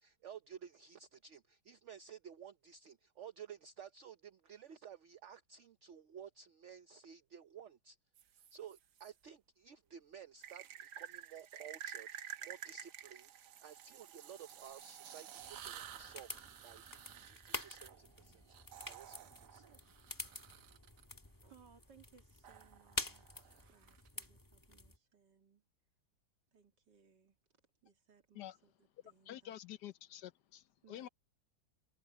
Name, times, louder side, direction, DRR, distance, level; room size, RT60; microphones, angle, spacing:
voice 1, 0.0-8.0 8.3-16.3 16.6-18.6 18.9-19.7, right 8 dB, 55° right, 0.9 m, -54 dB
sound 1, 8.2-9.1 10.4-21.0 22.4-24.3, right 9 dB, 75° right, 1.5 m, -52 dB
sound 2, 15.4-25.0, left 1 dB, 10° left, 1.5 m, -48 dB
voice 2, 21.4-25.6 26.5-27.4 27.8-29.6 30.8-31.1, right 7 dB, 90° right, 2.9 m, -66 dB
voice 3, 29.3-31.1, left 12 dB, 75° left, 1.4 m, -49 dB
omnidirectional pair, 1.8 m